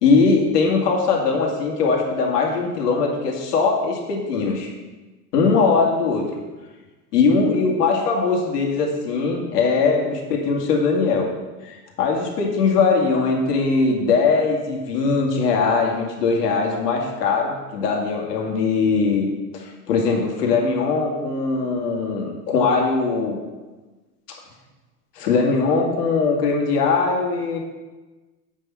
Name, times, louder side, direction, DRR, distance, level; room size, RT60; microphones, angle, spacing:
voice 1, 0.0-4.7 5.3-6.4 7.1-11.3 11.6-19.3 19.5-23.4 24.3-24.4 25.2-27.6, left 4 dB, 85° left, 0 dB, 2.2 m, -20 dB
8.2 x 6.4 x 5.8 m, 1.2 s
supercardioid pair, 135°, 46 cm